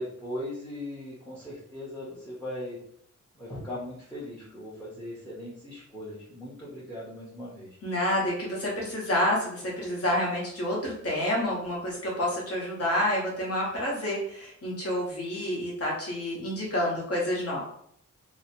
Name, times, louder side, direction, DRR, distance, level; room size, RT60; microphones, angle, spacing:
voice 1, 0.0-2.8 3.3-7.7, left 1 dB, 5° left, -8 dB, 0.6 m, -39 dB
voice 2, 7.8-17.6, left 1 dB, 50° left, -3 dB, 1.0 m, -29 dB
2.7 x 2.0 x 2.8 m, 0.68 s
wide cardioid pair, 170°, 31 cm